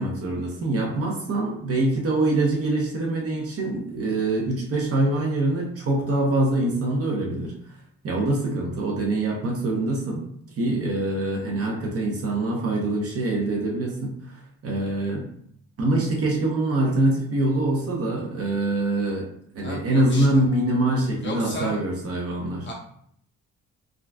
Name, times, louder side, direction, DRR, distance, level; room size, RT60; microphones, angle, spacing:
voice 1, 0.0-7.5 8.0-10.2 10.6-15.3 15.8-19.3 19.5-22.7, right 2 dB, 50° right, -2 dB, 0.9 m, -24 dB
voice 2, 19.6-20.4 21.2-21.8 22.6-22.7, left 1 dB, 40° left, -2 dB, 1.2 m, -33 dB
3.8 x 2.4 x 2.3 m, 0.65 s
cardioid pair, 90°, 30 cm